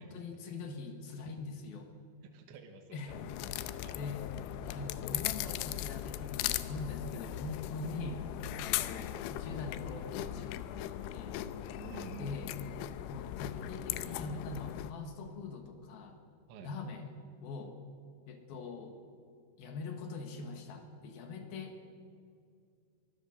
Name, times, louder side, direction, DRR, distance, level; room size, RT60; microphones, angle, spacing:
voice 1, 0.0-1.9 2.9-3.1 3.6-4.2 4.6-8.2 8.6-11.4 12.2-12.6 13.1-16.2 16.6-17.1 17.4-17.8 18.3-19.0 19.6-21.9, left 3 dB, 65° left, 5 dB, 3.0 m, -43 dB
voice 2, 2.2-3.2 3.8-4.0 11.7-12.7 16.5-16.7, right 7 dB, 75° right, 3 dB, 3.5 m, -50 dB
sound 1, 3.1-14.9, left 13 dB, 85° left, 3.2 m, -39 dB
24.0 x 15.5 x 7.0 m, 2.3 s
omnidirectional pair, 5.4 m